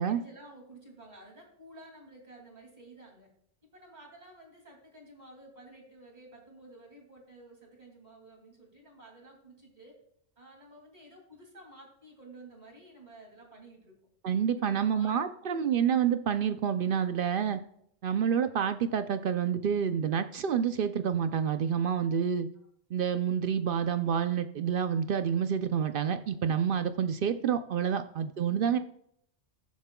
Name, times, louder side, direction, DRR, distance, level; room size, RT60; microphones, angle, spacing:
voice 1, 0.0-3.3 3.7-10.0 10.4-13.9 14.5-15.2 15.4-15.9 22.1-22.2 28.3-28.7, right 2 dB, 40° right, 1 dB, 2.6 m, -52 dB
voice 2, 14.2-17.6 18.0-22.5 22.9-28.8, right 8 dB, 60° right, 10 dB, 0.6 m, -28 dB
20.5 x 7.3 x 2.3 m, 0.71 s
omnidirectional pair, 1.2 m